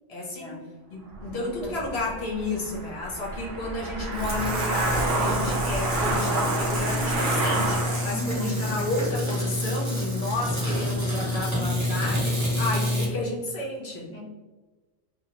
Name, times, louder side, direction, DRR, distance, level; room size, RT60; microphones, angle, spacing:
voice 1, 0.1-0.5 0.9-14.1, left 2 dB, 55° left, -3 dB, 1.0 m, -32 dB
sound 1, 1.1-8.3, right 2 dB, 60° right, 0.7 m, -29 dB
voice 2, 1.2-1.8 8.1-8.6 14.1-14.2, equal, 5° left, -5 dB, 0.5 m, -37 dB
sound 2, 4.1-13.1, left 1 dB, 15° right, 0.9 m, -28 dB
2.9 x 2.5 x 2.8 m, 1.2 s
omnidirectional pair, 1.4 m